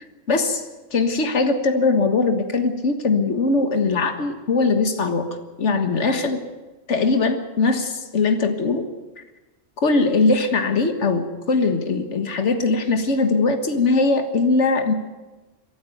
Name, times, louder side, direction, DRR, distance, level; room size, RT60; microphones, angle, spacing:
voice 1, 0.3-0.6 0.9-5.3 5.6-6.4 6.9-8.9 9.2-9.3 9.8-14.9, left 3 dB, 70° left, 7 dB, 1.9 m, -20 dB
23.0 x 12.5 x 9.2 m, 1.2 s
omnidirectional pair, 1.3 m